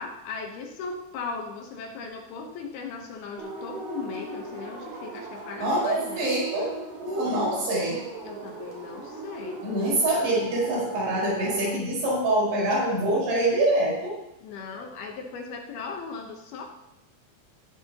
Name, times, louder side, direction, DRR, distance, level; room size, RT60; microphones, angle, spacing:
voice 1, 0.0-6.3 7.2-7.6 8.2-9.7 14.4-16.7, left 4 dB, 70° left, 2 dB, 2.7 m, -38 dB
sound 1, 3.4-11.7, right 3 dB, 45° right, 3.5 m, -38 dB
voice 2, 5.6-6.7 7.0-8.0 9.6-14.2, right 1 dB, 85° right, -5 dB, 7.2 m, -25 dB
16.0 x 11.5 x 2.9 m, 0.88 s
omnidirectional pair, 5.0 m